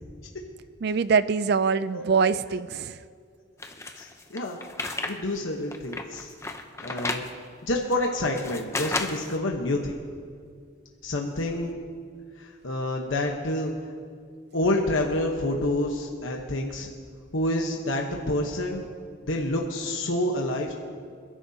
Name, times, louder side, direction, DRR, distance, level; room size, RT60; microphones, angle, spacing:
voice 1, 0.8-3.0, right 5 dB, 50° right, 15 dB, 0.4 m, -23 dB
sound 1, 3.6-5.2 5.5-7.3 7.9-9.4, left 2 dB, 15° left, 0.7 m, -32 dB
voice 2, 4.0-4.6 5.0-6.3 6.8-7.3 7.6-10.0 11.0-11.8 12.4-13.7 14.5-16.9 17.3-18.9 19.2-20.7, left 1 dB, 75° left, 0 dB, 1.1 m, -28 dB
28.5 x 11.0 x 2.8 m, 2.1 s
head